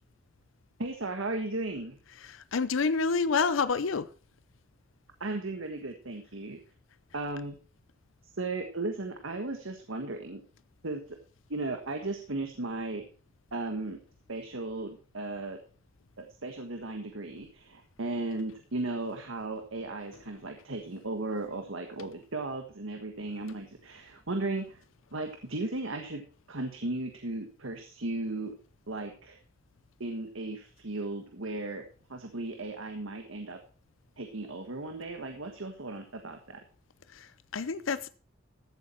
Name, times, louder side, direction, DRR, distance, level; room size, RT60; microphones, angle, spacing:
voice 1, 0.8-2.0 5.2-6.6 7.1-7.6 8.2-10.4 10.8-11.2 11.5-13.1 13.5-14.0 14.3-15.6 16.2-24.8 25.1-26.2 26.5-28.5 28.9-29.4 30.0-31.8 32.1-33.6 34.2-36.6, right 2 dB, 90° right, 1.5 m, -36 dB
voice 2, 2.2-4.1 37.1-38.1, left 5 dB, 80° left, 0.6 m, -28 dB
14.5 x 8.5 x 4.5 m
head